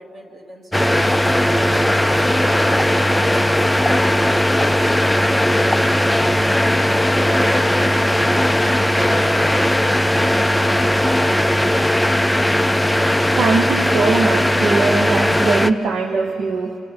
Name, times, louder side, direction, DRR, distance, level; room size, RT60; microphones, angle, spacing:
voice 1, 0.0-2.7 6.7-9.9, right 1 dB, 40° right, 0 dB, 2.7 m, -40 dB
sound 1, 0.7-15.7, left 1 dB, 5° left, 0.4 m, -17 dB
voice 2, 13.3-16.8, right 4 dB, 60° right, 5 dB, 0.9 m, -20 dB
27.0 x 25.0 x 4.1 m, 2.7 s
cardioid pair, 150°, 0 cm